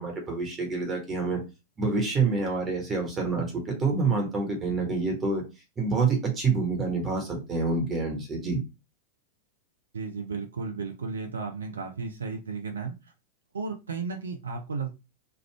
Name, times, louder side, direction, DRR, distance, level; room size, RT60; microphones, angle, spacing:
voice 1, 0.0-1.4 1.8-5.4 5.8-8.6, right 4 dB, 25° right, 1 dB, 1.2 m, -27 dB
voice 2, 9.9-13.1 13.5-14.9, right 4 dB, 70° right, 4 dB, 0.5 m, -34 dB
3.4 x 2.4 x 3.2 m, 0.27 s
figure-of-eight pair, 90°, 0 cm